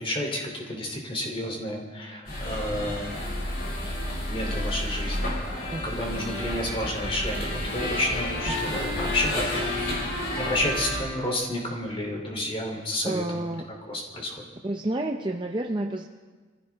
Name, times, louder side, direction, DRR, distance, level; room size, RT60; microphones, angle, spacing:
voice 1, 0.0-3.2 4.2-5.4 5.7-10.0 10.3-13.5 13.9-14.4, left 1 dB, 25° left, 0 dB, 3.1 m, -31 dB
sound 1, 2.3-11.0, left 1 dB, 50° left, 5.3 m, -30 dB
voice 2, 5.7-6.0 8.7-8.8 13.0-13.7 14.6-16.0, right 1 dB, 25° right, 3 dB, 0.6 m, -30 dB
24.0 x 16.0 x 3.5 m, 1.4 s
head